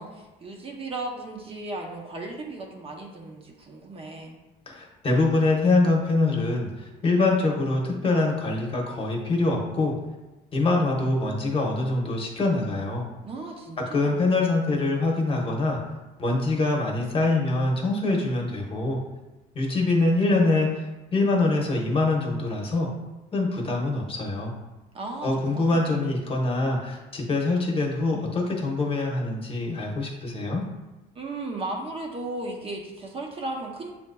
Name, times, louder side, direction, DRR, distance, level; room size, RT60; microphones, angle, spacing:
voice 1, 0.0-4.4 13.2-14.1 24.9-25.9 31.1-33.9, right 2 dB, 35° right, 0 dB, 0.7 m, -35 dB
voice 2, 4.7-9.9 10.5-13.1 13.9-15.8 16.2-19.0 19.5-22.9 23.3-24.5 25.2-30.6, left 2 dB, 35° left, -1 dB, 0.9 m, -24 dB
7.3 x 2.5 x 2.2 m, 1.1 s
cardioid pair, 110°, 17 cm